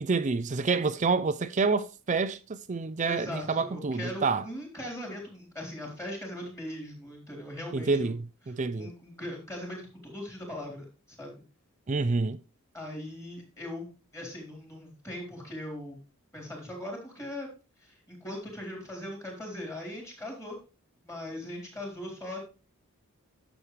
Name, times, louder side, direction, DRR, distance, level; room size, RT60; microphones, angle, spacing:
voice 1, 0.0-4.5 7.7-8.9 11.9-12.4, right 4 dB, 35° right, 0.4 m, -28 dB
voice 2, 3.0-8.1 8.8-10.8 11.2-11.3 12.7-13.9 14.1-16.0 16.3-17.5 17.8-20.6 21.0-22.4, left 1 dB, 15° left, 4.1 m, -39 dB
11.0 x 7.2 x 3.3 m
head